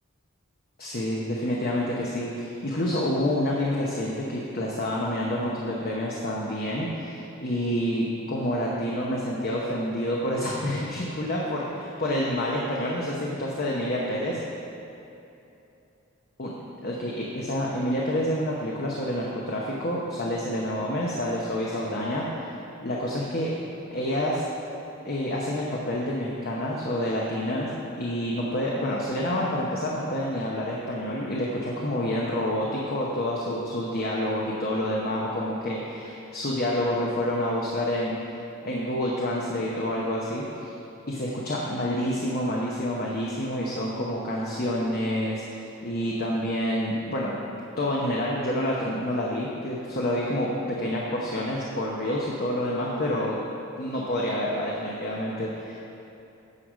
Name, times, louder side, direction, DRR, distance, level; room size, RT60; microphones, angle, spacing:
voice 1, 0.8-14.4 16.4-16.5 16.8-23.5 23.9-24.5 25.0-40.8 41.1-47.3 47.8-53.4 53.7-55.8, left 1 dB, 45° left, -4 dB, 0.9 m, -28 dB
9.8 x 4.8 x 6.4 m, 2.9 s
head